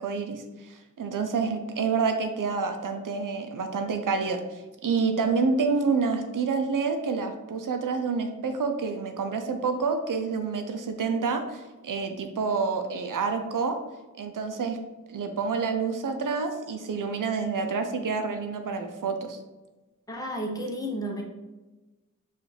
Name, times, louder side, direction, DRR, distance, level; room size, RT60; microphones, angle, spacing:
voice 1, 0.0-4.4 4.8-13.8 14.2-14.8 15.1-19.4, right 4 dB, 85° right, 6 dB, 0.5 m, -28 dB
voice 2, 20.1-21.2, equal, 10° left, 0 dB, 0.8 m, -32 dB
4.9 x 2.5 x 3.2 m, 1.1 s
wide cardioid pair, 50°, 31 cm